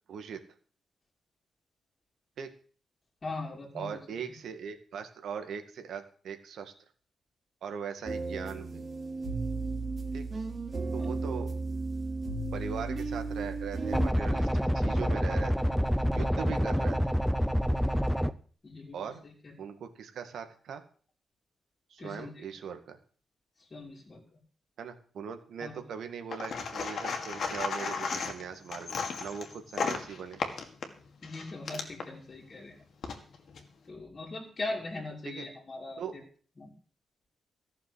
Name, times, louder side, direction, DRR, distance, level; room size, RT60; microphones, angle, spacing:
voice 1, 0.1-0.4 2.4-2.5 3.7-6.7 7.6-8.8 10.1-10.2 10.9-11.6 12.5-15.8 16.1-17.0 18.9-19.2 19.6-20.8 21.9-23.0 24.8-30.4 35.2-35.5 36.0-36.2, right 7 dB, 75° right, 7 dB, 2.0 m, -40 dB
voice 2, 3.2-4.0 11.0-11.2 18.6-19.1 19.4-19.5 22.0-22.4 23.6-24.2 25.6-25.8 31.2-32.8 33.9-36.2 36.6-36.7, left 2 dB, 30° left, -3 dB, 2.9 m, -40 dB
sound 1, 8.0-14.1, right 3 dB, 30° right, 2.7 m, -34 dB
sound 2, 13.9-18.3, equal, ahead, 0.6 m, -27 dB
sound 3, 26.3-32.1 32.8-33.6, left 5 dB, 60° left, 2.1 m, -35 dB
14.5 x 6.8 x 7.9 m, 0.44 s
wide cardioid pair, 140°, 0 cm